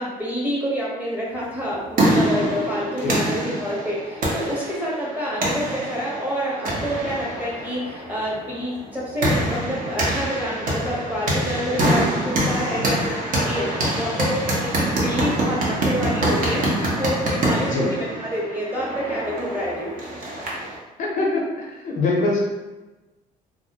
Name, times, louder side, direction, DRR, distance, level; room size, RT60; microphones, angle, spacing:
voice 1, 0.0-13.1 13.4-19.9, equal, 10° right, -6 dB, 0.8 m, -28 dB
sound 1, 1.5-20.8, right 1 dB, 55° right, 0.7 m, -25 dB
voice 2, 21.0-22.4, left 2 dB, 50° left, -2 dB, 0.5 m, -24 dB
2.2 x 2.0 x 2.7 m, 1.1 s
cardioid pair, 110°, 17 cm